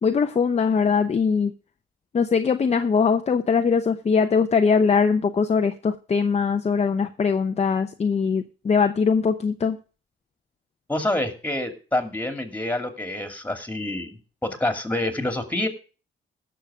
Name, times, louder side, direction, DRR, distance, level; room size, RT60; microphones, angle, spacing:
voice 1, 0.0-1.5 2.1-9.8, left 5 dB, 35° left, 7 dB, 0.8 m, -21 dB
voice 2, 10.9-15.7, left 1 dB, 10° left, 7 dB, 2.6 m, -27 dB
16.0 x 6.7 x 4.9 m, 0.36 s
cardioid pair, 90°, 20 cm